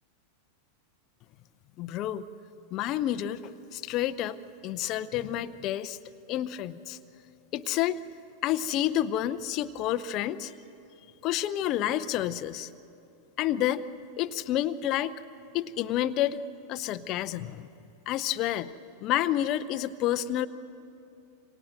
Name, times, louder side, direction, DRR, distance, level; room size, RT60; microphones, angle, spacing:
voice 1, 1.8-2.2 2.7-3.4 3.7-4.4 4.6-6.0 6.3-7.0 7.5-8.0 8.4-10.5 11.2-12.7 13.4-13.9 14.2-15.1 15.5-16.4 16.7-17.7 18.1-18.7 19.0-20.5, left 12 dB, 40° left, 12 dB, 0.6 m, -29 dB
27.0 x 25.0 x 7.8 m, 2.7 s
figure-of-eight pair, 90°, 0 cm